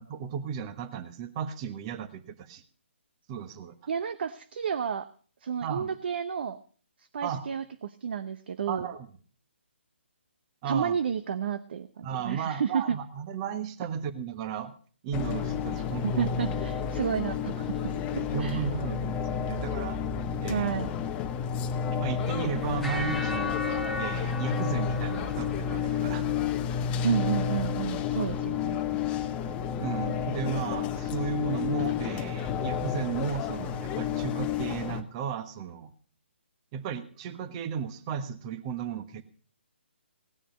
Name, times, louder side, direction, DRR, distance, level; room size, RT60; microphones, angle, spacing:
voice 1, 0.0-2.6 3.3-3.7 5.6-5.9 7.2-7.5 8.7-9.1 10.6-11.0 12.0-14.7 15.0-16.3 18.1-20.0 20.4-20.7 22.0-23.6 24.0-26.2 29.8-35.9 36.7-39.2, right 7 dB, 30° right, 11 dB, 1.3 m, -34 dB
voice 2, 3.9-5.1 5.4-6.6 7.1-8.9 10.6-13.0 16.0-18.6 20.5-20.9 27.0-28.8, right 7 dB, 55° right, 12 dB, 0.8 m, -31 dB
sound 1, 15.1-35.0, left 7 dB, 20° left, 0.8 m, -31 dB
sound 2, 22.2-26.5, left 2 dB, ahead, 1.2 m, -37 dB
17.5 x 10.0 x 5.1 m, 0.44 s
figure-of-eight pair, 145°, 7 cm